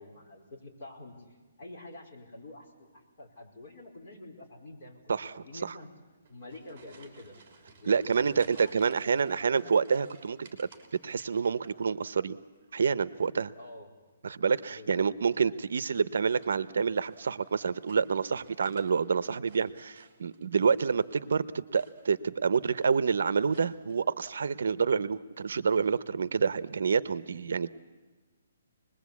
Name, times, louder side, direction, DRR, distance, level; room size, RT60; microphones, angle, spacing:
voice 1, 0.0-5.9 6.3-7.4 7.8-9.8 13.6-13.9 14.7-15.1, left 2 dB, 35° left, -2 dB, 4.6 m, -48 dB
voice 2, 5.1-5.8 7.9-10.7 11.0-12.4 12.7-13.5 14.2-27.7, right 5 dB, 65° right, 17 dB, 0.7 m, -28 dB
sound 1, 6.1-12.1 12.4-13.0 14.4-14.8 15.8-18.9 19.2-21.2 21.7-22.3 22.6-23.0 23.5-24.0, right 4 dB, 20° right, 3.3 m, -58 dB
26.0 x 20.5 x 8.3 m, 1.3 s
hypercardioid pair, 175°, 0 cm